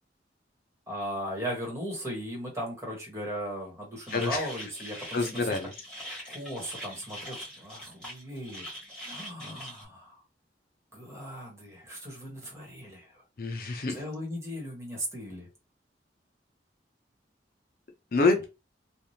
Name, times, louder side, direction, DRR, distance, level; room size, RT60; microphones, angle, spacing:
voice 1, 0.9-5.6 6.3-8.7 9.0-10.1 10.9-13.2 13.9-15.5, equal, 15° right, 1.3 m, -37 dB
voice 2, 4.1-4.5 5.1-5.7 13.4-13.9 18.1-18.4, left 3 dB, 55° left, 0.6 m, -26 dB
Hydrophone pond phaser effect, 4.1-9.8, equal, 5° left, 1.6 m, -43 dB
3.3 x 2.4 x 2.7 m
head